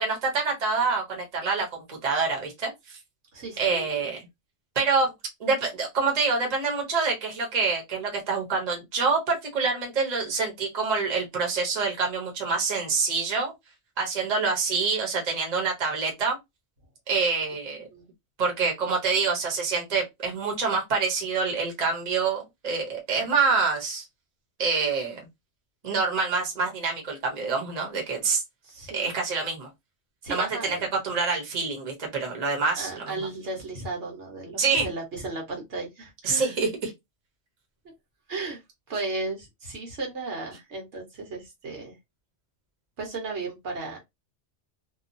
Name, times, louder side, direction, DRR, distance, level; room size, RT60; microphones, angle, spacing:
voice 1, 0.0-3.0 3.6-4.2 4.7-5.1 5.4-13.5 14.0-16.4 17.1-17.8 18.4-24.0 24.6-25.2 25.8-28.4 28.9-29.7 30.3-30.8 31.0-33.2 34.6-34.9 36.2-36.9, right 4 dB, 35° right, 1.0 m, -26 dB
voice 2, 3.3-4.1 17.9-18.1 28.6-29.1 30.2-30.9 32.8-36.5 38.3-38.6 38.9-41.9 43.0-44.0, right 3 dB, 70° right, 1.3 m, -35 dB
2.8 x 2.3 x 2.6 m
omnidirectional pair, 1.2 m